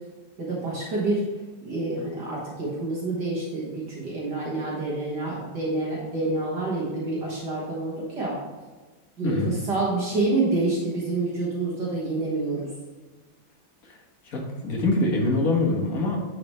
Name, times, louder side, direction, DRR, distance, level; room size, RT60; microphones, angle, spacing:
voice 1, 0.4-1.3 1.6-8.4 9.2-12.7, right 2 dB, 60° right, -5 dB, 2.1 m, -27 dB
voice 2, 14.2-16.2, left 2 dB, 50° left, 0 dB, 1.6 m, -24 dB
9.7 x 4.9 x 3.2 m, 1.3 s
omnidirectional pair, 2.1 m